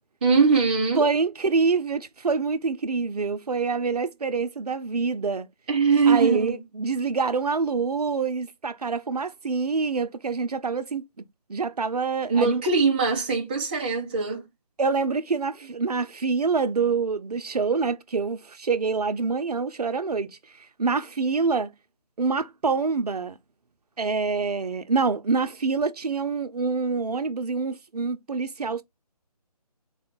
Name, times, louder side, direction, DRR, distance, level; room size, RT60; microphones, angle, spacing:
voice 1, 0.2-1.1 5.7-6.6 12.3-14.4, right 5 dB, 15° right, 0.5 m, -21 dB
voice 2, 1.0-5.5 6.1-11.1 11.5-12.6 14.8-20.4 20.8-21.7 22.2-23.4 24.0-28.8, right 4 dB, 70° right, 0.7 m, -26 dB
3.7 x 2.3 x 3.6 m
figure-of-eight pair, 155°, 20 cm